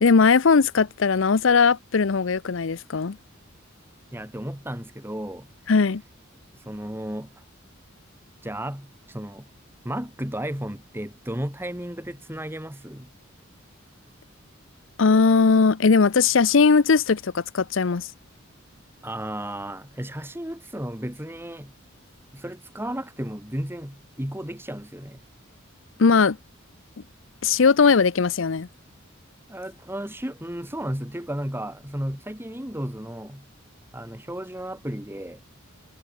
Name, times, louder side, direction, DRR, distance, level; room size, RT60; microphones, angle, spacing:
voice 1, 0.0-3.2 5.7-6.0 15.0-18.1 26.0-26.4 27.4-28.7, left 5 dB, 70° left, 0.6 m, -19 dB
voice 2, 4.1-5.7 6.6-7.4 8.4-9.5 9.8-13.1 19.0-21.7 22.3-25.2 29.5-33.5 33.9-35.4, right 1 dB, 10° right, 3.6 m, -34 dB
head